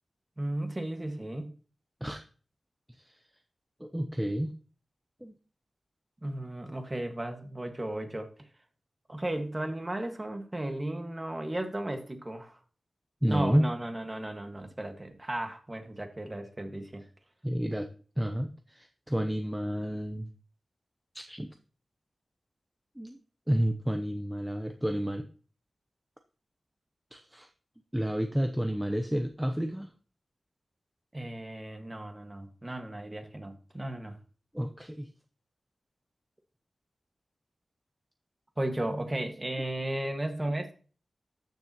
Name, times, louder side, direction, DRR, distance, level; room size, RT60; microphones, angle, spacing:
voice 1, 0.4-1.5 6.2-8.3 9.1-12.6 13.3-17.0 31.1-34.2 38.6-40.7, right 1 dB, 20° right, 5 dB, 1.6 m, -35 dB
voice 2, 3.8-4.5 5.2-5.3 13.2-13.7 17.4-17.9 18.2-20.3 21.1-21.5 23.0-23.2 23.5-25.3 27.1-27.5 27.9-29.9 34.5-35.1, equal, 5° right, 6 dB, 0.7 m, -30 dB
13.5 x 6.6 x 3.0 m, 0.39 s
wide cardioid pair, 90°, 0 cm